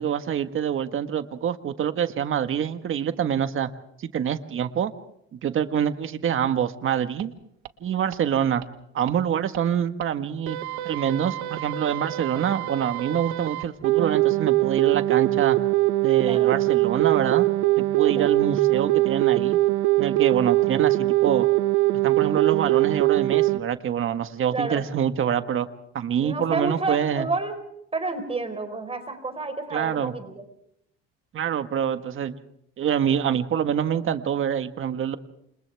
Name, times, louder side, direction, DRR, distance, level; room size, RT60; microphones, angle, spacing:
voice 1, 0.0-3.7 4.0-4.9 5.3-7.3 7.8-8.6 8.9-10.6 10.8-15.6 16.0-17.5 17.8-19.6 20.0-21.5 22.0-25.7 25.9-27.3 29.7-30.1 31.3-32.3 32.8-35.2, right 9 dB, 45° right, 9 dB, 1.6 m, -25 dB
sound 1, 7.2-7.3 7.6-7.7 8.1-8.2 8.6-8.7 9.1-9.2 9.5-9.6 10.0-10.1 10.5-23.6, right 19 dB, 85° right, 1.6 m, -22 dB
voice 2, 26.2-27.6 27.9-30.4, right 3 dB, 20° right, 7 dB, 4.6 m, -30 dB
29.0 x 27.5 x 3.5 m, 0.73 s
cardioid pair, 105°, 29 cm